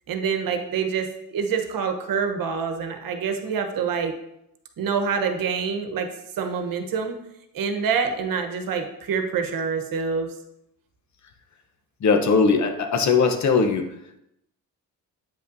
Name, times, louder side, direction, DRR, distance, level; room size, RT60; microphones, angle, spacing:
voice 1, 0.1-4.2 4.8-6.1 6.4-7.2 7.5-10.3, right 6 dB, 70° right, 6 dB, 1.0 m, -26 dB
voice 2, 12.0-13.9, left 4 dB, 50° left, 6 dB, 0.9 m, -20 dB
8.5 x 5.6 x 2.7 m, 0.83 s
cardioid pair, 115°, 35 cm